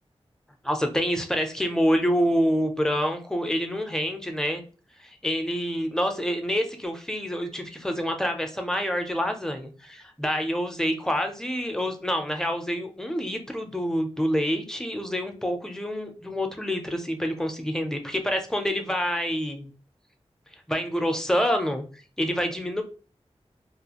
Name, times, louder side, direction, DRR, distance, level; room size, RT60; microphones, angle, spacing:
voice 1, 0.6-4.6 5.0-19.7 20.7-21.8 22.2-22.8, equal, 5° left, 5 dB, 0.5 m, -27 dB
2.5 x 2.3 x 2.8 m, 0.38 s
wide cardioid pair, 70°, 11 cm